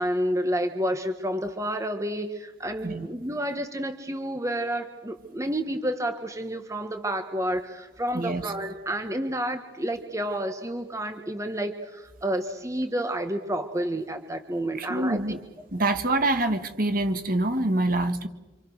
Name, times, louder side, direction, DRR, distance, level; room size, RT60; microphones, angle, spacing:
voice 1, 0.0-15.2, right 1 dB, 15° right, 7 dB, 1.5 m, -30 dB
voice 2, 8.1-8.5 14.7-15.4 15.7-18.3, right 2 dB, 50° right, 7 dB, 2.1 m, -25 dB
27.5 x 27.5 x 6.5 m, 1.1 s
head